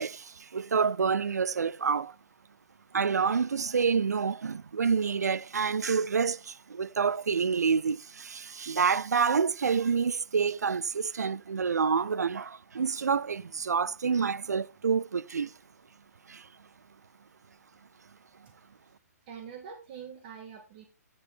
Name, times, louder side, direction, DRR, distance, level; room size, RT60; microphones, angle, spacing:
voice 1, 0.0-2.1 2.9-15.5 16.3-16.5, right 6 dB, 70° right, 0.5 m, -28 dB
voice 2, 19.3-20.9, right 7 dB, 35° right, 1.9 m, -44 dB
14.5 x 7.0 x 3.5 m
figure-of-eight pair, 130°, 9 cm